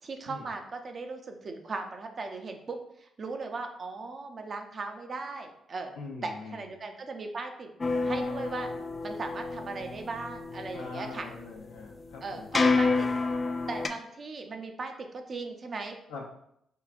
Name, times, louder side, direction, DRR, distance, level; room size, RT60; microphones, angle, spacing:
voice 1, 0.0-5.9 6.2-7.7 8.0-8.7 9.0-11.3 12.2-13.1 13.7-16.0, right 3 dB, 50° right, 4 dB, 0.5 m, -38 dB
voice 2, 5.9-6.6 10.7-13.2 16.1-16.3, left 3 dB, 90° left, -2 dB, 0.6 m, -42 dB
sound 1, 7.8-13.9, left 3 dB, 35° left, 0.3 m, -30 dB
4.5 x 2.3 x 2.5 m, 0.75 s
supercardioid pair, 50°, 0 cm